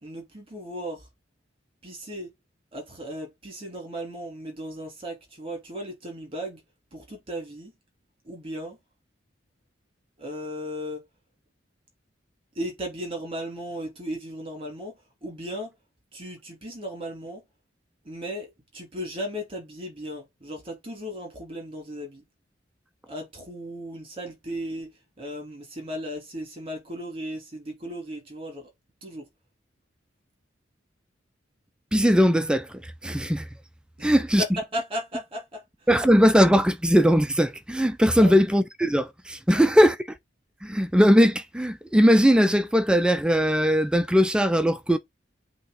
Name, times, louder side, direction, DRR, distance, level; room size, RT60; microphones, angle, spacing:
voice 1, 0.0-1.1 1.8-2.3 2.7-6.6 6.9-7.7 8.2-8.8 10.2-11.1 12.5-15.7 16.1-17.4 18.0-22.2 23.1-28.7 29.0-29.3 34.0-34.1 34.4-35.9 38.2-38.4 39.5-39.7, equal, 30° right, 3.0 m, -36 dB
voice 2, 31.9-33.5 34.0-34.4 35.9-40.0 40.6-45.0, equal, 5° right, 0.3 m, -20 dB
8.2 x 2.9 x 4.0 m
head